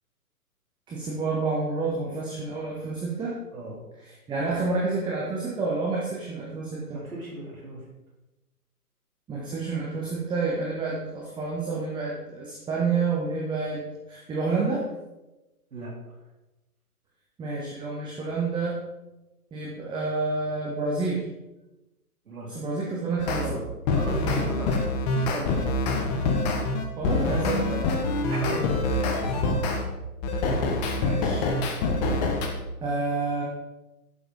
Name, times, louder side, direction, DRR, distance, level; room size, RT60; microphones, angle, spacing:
voice 1, 0.9-3.3 4.0-7.0 9.3-14.8 17.4-18.8 19.5-21.2 22.5-23.4 24.1-24.5 26.0-26.2 27.0-27.9 31.0-31.4 32.8-33.4, right 3 dB, 10° right, -4 dB, 1.4 m, -29 dB
voice 2, 3.5-3.8 6.9-7.8 15.7-16.1 22.3-22.5 23.4-24.9 25.2-25.6 28.3-29.4, right 1 dB, 70° right, -3 dB, 3.9 m, -36 dB
sound 1, 23.2-23.5 23.9-29.8 30.2-32.5, left 2 dB, 30° left, 1.3 m, -25 dB
11.5 x 8.1 x 4.0 m, 1.0 s
figure-of-eight pair, 125°, 45 cm